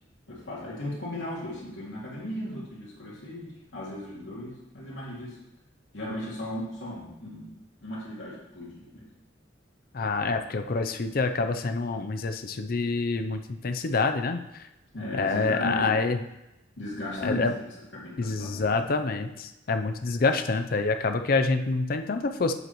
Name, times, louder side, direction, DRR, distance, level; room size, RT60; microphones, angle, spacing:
voice 1, 0.3-5.4 5.9-9.0 14.9-16.0 16.8-17.6 17.9-18.9, left 1 dB, 85° left, -6 dB, 2.4 m, -36 dB
voice 2, 9.9-14.7 15.1-16.2 17.2-17.5 18.2-22.5, left 3 dB, 50° left, 7 dB, 0.5 m, -27 dB
7.9 x 7.8 x 3.0 m, 0.93 s
head